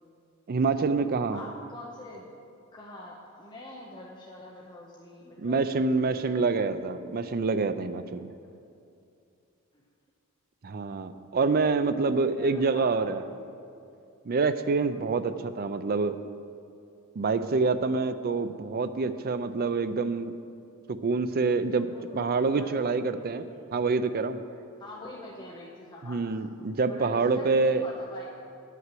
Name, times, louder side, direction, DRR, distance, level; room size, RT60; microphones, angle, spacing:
voice 1, 0.5-1.4 5.4-8.3 10.6-13.2 14.3-16.2 17.2-20.3 20.9-21.9 22.1-23.4 23.7-24.4 26.1-27.8, right 4 dB, 45° right, 11 dB, 0.4 m, -26 dB
voice 2, 1.0-2.4 2.7-6.6 9.7-9.8 12.2-12.9 13.3-13.6 14.9-15.1 21.8-22.8 23.1-24.4 24.8-26.2 26.8-28.3, left 2 dB, 20° left, -4 dB, 0.9 m, -45 dB
9.4 x 5.8 x 7.6 m, 2.5 s
head